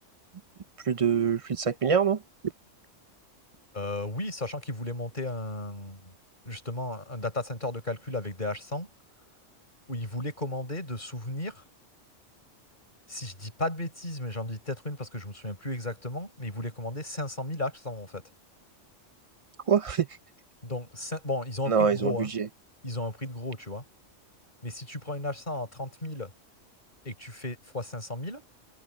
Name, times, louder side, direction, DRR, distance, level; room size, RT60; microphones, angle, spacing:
voice 1, 0.8-2.2 19.7-20.1 21.7-22.4, right 6 dB, 50° right, 0.4 m, -24 dB
voice 2, 3.7-6.1 6.4-8.9 9.9-11.6 13.1-18.2 20.6-22.3 22.8-23.8 24.6-26.3 27.0-28.4, left 2 dB, 40° left, 4.8 m, -34 dB
open air
omnidirectional pair, 1.3 m